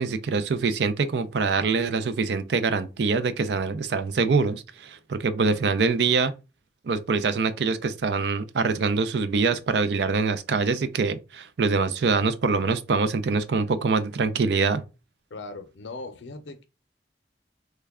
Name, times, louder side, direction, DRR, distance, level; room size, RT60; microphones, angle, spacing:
voice 1, 0.0-6.3 6.8-14.8, right 4 dB, 70° right, 0.4 m, -24 dB
voice 2, 15.3-16.6, left 3 dB, 90° left, 0.6 m, -39 dB
3.2 x 2.2 x 3.5 m
head